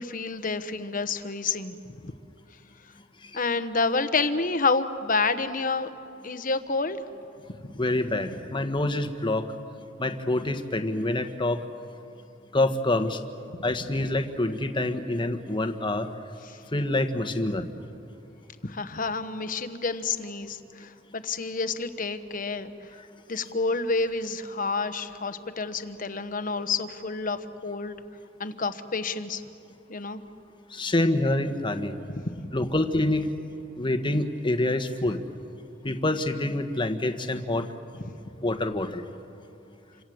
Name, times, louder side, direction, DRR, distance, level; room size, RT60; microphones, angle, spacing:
voice 1, 0.0-2.1 3.3-5.9 6.2-7.0 16.5-16.6 18.6-22.7 23.3-28.0 28.4-29.4 29.9-30.2 32.1-32.6 38.0-38.2, left 4 dB, 45° left, 11 dB, 1.2 m, -29 dB
voice 2, 7.8-9.5 10.0-11.6 12.5-13.2 13.6-16.1 16.7-17.7 30.7-32.0 32.5-33.3 33.8-35.2 35.8-37.7 38.4-39.0, left 1 dB, 25° left, 8 dB, 1.3 m, -26 dB
28.0 x 26.0 x 7.9 m, 2.8 s
head